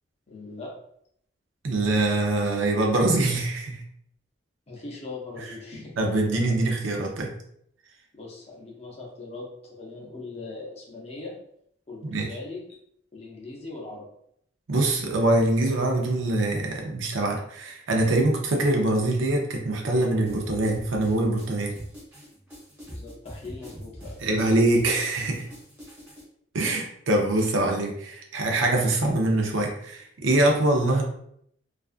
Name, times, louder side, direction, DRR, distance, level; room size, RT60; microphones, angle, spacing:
voice 1, 0.3-0.7 4.7-5.9 8.1-11.3 11.9-12.8 13.1-14.1 22.9-24.2, left 3 dB, 35° left, -2 dB, 0.6 m, -40 dB
voice 2, 1.6-3.8 6.0-7.3 12.1-12.4 14.7-21.7 24.2-25.5 26.5-31.0, right 2 dB, 90° right, 1 dB, 0.5 m, -24 dB
sound 1, 20.3-26.2, equal, 10° right, 0.9 m, -43 dB
2.4 x 2.3 x 2.4 m, 0.71 s
head